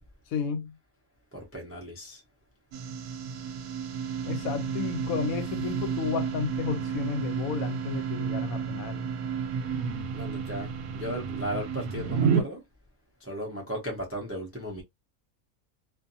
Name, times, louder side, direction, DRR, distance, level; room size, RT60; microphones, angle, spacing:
voice 1, 0.3-0.7 4.2-9.0, left 7 dB, 75° left, 1.0 m, -32 dB
voice 2, 1.3-2.2 10.1-12.6 13.2-14.8, equal, 20° right, 0.3 m, -36 dB
sound 1, 2.7-12.4, right 6 dB, 80° right, 1.1 m, -31 dB
2.5 x 2.5 x 2.6 m
omnidirectional pair, 1.5 m